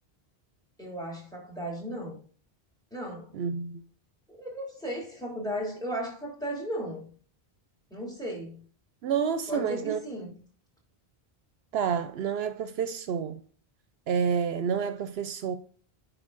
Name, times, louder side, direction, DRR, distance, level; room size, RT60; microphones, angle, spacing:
voice 1, 0.8-2.2 2.9-3.3 4.3-7.1 7.9-8.6 9.5-10.3, equal, 5° left, 2.9 m, -35 dB
voice 2, 3.3-3.8 9.0-10.0 11.7-13.4 14.1-15.5, right 7 dB, 75° right, 0.8 m, -29 dB
9.7 x 4.8 x 2.5 m
omnidirectional pair, 1.1 m